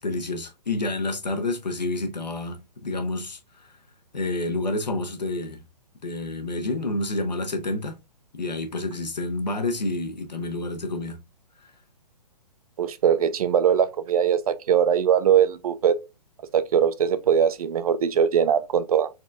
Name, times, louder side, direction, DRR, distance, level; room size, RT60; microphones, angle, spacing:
voice 1, 0.0-3.7 4.1-5.6 6.0-8.0 8.3-11.2, left 2 dB, 90° left, 1.1 m, -29 dB
voice 2, 12.8-16.0 16.5-19.1, right 8 dB, 60° right, 0.6 m, -21 dB
4.2 x 2.5 x 3.4 m
hypercardioid pair, 130°, 21 cm